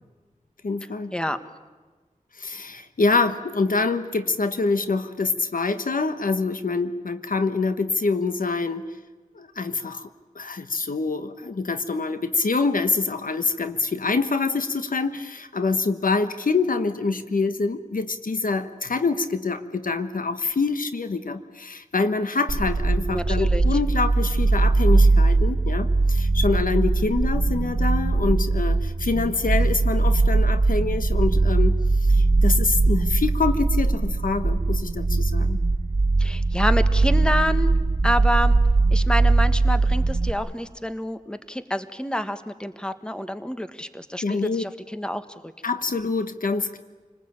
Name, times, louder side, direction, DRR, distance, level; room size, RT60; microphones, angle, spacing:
voice 1, 0.6-1.1 2.4-8.8 9.3-10.1 10.3-35.6 44.2-44.6 45.6-46.8, left 4 dB, 85° left, 9 dB, 1.3 m, -25 dB
sound 1, 22.5-40.3, right 3 dB, 60° right, 1.6 m, -20 dB
voice 2, 23.1-23.6 36.2-37.7 38.0-38.6 38.9-45.5, equal, 5° left, 10 dB, 1.5 m, -28 dB
28.5 x 20.0 x 8.9 m, 1.3 s
wide cardioid pair, 55°, 14 cm